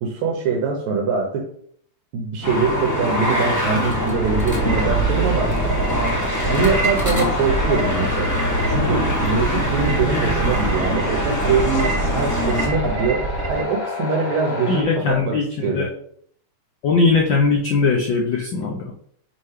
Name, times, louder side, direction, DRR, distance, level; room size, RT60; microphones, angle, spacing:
voice 1, 0.0-1.5 2.1-5.5 6.5-8.3 8.7-15.9, right 4 dB, 75° right, 0 dB, 2.2 m, -23 dB
sound 1, 2.4-12.7, equal, 15° left, 0.7 m, -23 dB
sound 2, 4.2-13.6, right 2 dB, 45° right, 1.3 m, -26 dB
sound 3, 6.3-14.8, left 2 dB, 45° left, 0.8 m, -33 dB
voice 2, 14.7-15.9 16.8-18.9, left 4 dB, 80° left, -1 dB, 1.0 m, -20 dB
5.9 x 3.3 x 5.6 m, 0.62 s
omnidirectional pair, 3.3 m